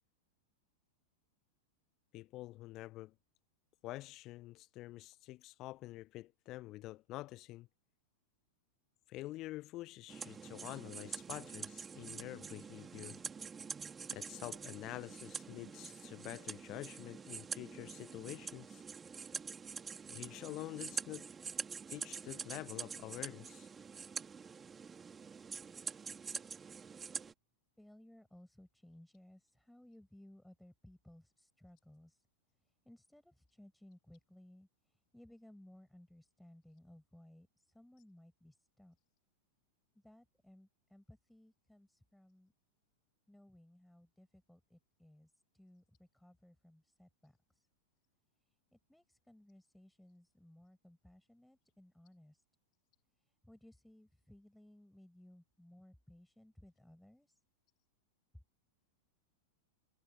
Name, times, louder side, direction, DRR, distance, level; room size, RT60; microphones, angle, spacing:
voice 1, 2.1-3.1 3.8-7.7 9.1-13.2 14.1-18.8 20.1-21.3 21.9-23.7, left 17 dB, 35° left, 1.2 m, -47 dB
sound 1, 10.1-27.3, right 6 dB, 15° right, 3.6 m, -46 dB
voice 2, 27.8-32.3 32.6-39.0 39.9-42.5 43.3-47.7 48.4-52.4 53.1-57.4 58.3-58.4, left 1 dB, ahead, 7.6 m, -61 dB
figure-of-eight pair, 90°, 0 cm